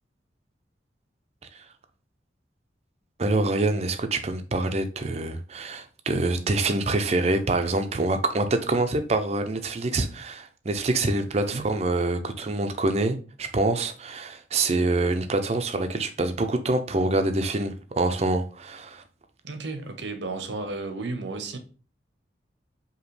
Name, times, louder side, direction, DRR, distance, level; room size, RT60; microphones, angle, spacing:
voice 1, 3.2-19.0, right 2 dB, 35° right, 0.5 m, -26 dB
voice 2, 19.4-21.6, right 3 dB, 75° right, 0.8 m, -33 dB
5.0 x 2.8 x 3.1 m
head